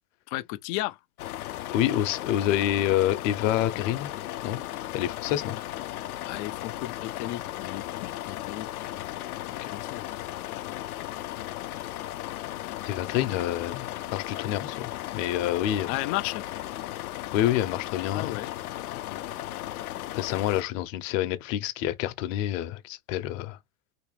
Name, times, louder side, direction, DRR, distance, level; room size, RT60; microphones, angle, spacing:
voice 1, 0.3-1.0 6.3-9.1 9.7-10.1 10.4-10.7 12.6-12.7 15.9-16.4 18.1-18.5 18.9-19.2, left 17 dB, 40° left, 0.4 m, -35 dB
sound 1, 1.2-20.6, left 14 dB, 90° left, 0.7 m, -36 dB
voice 2, 1.7-4.1 4.4-4.6 4.9-5.6 9.6-9.7 12.8-16.0 17.3-18.4 20.1-23.6, left 12 dB, 60° left, 0.9 m, -27 dB
3.3 x 2.9 x 3.2 m
supercardioid pair, 120°, 43 cm